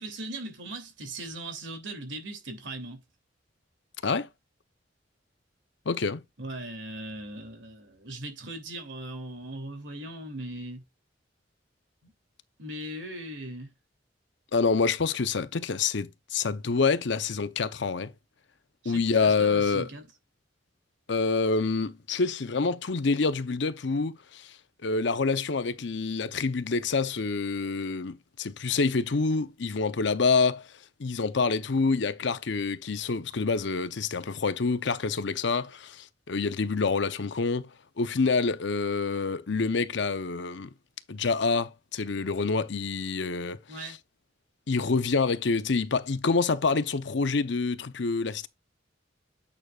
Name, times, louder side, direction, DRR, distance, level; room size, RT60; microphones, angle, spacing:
voice 1, 0.0-3.0 6.4-10.8 12.0-12.1 12.6-13.7 18.8-20.1 43.7-44.0, right 1 dB, 75° right, 2.8 m, -39 dB
voice 2, 5.9-6.2 14.5-18.1 18.8-19.9 21.1-24.5 24.8-30.7 31.0-37.7 38.0-40.7 41.1-44.0 44.7-48.5, left 4 dB, 70° left, 0.7 m, -27 dB
9.0 x 6.4 x 2.4 m
head